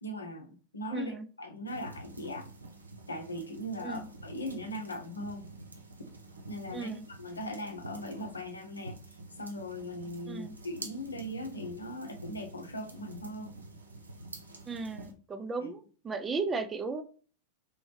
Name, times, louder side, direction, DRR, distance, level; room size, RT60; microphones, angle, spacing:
voice 1, 0.0-2.5 3.1-5.4 6.5-9.0 9.4-13.5 15.6-15.7, left 1 dB, 75° left, 5 dB, 0.6 m, -39 dB
voice 2, 0.9-1.3 3.8-4.1 6.7-7.0 10.3-10.5 14.7-17.0, right 4 dB, 20° right, 9 dB, 0.4 m, -35 dB
sound 1, 1.7-15.1, right 2 dB, 80° right, 0.5 m, -48 dB
3.4 x 3.1 x 3.1 m, 0.40 s
figure-of-eight pair, 90°, 0 cm